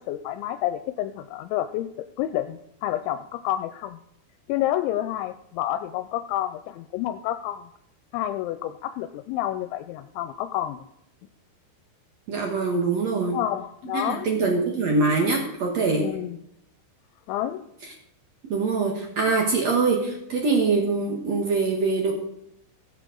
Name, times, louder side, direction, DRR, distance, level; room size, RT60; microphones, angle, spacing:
voice 1, 0.1-1.9 2.2-4.0 4.5-7.7 8.1-10.8 13.2-14.3 16.0-16.4 17.3-17.6, left 13 dB, 85° left, 10 dB, 2.9 m, -29 dB
voice 2, 12.3-13.4 13.9-16.1 18.5-22.1, right 4 dB, 85° right, 0 dB, 1.5 m, -23 dB
19.5 x 7.8 x 3.8 m, 0.78 s
omnidirectional pair, 5.4 m